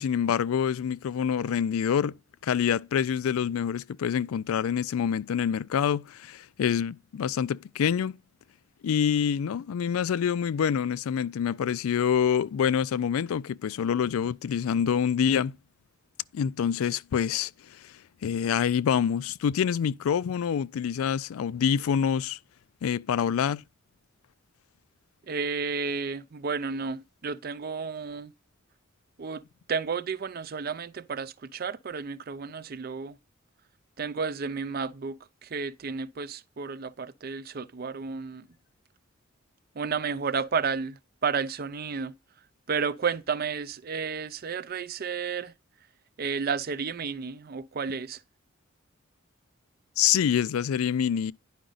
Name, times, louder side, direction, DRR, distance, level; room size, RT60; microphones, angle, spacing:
voice 1, 0.0-2.2 2.4-8.2 8.8-15.6 16.3-17.5 17.8-17.9 18.2-22.4 22.8-23.6 50.0-51.3, left 8 dB, 90° left, 0.3 m, -26 dB
voice 2, 25.3-28.3 29.2-29.4 29.7-33.2 34.0-38.5 39.8-42.2 42.7-45.5 46.2-48.2, right 5 dB, 45° right, 0.4 m, -32 dB
10.0 x 5.0 x 3.9 m
head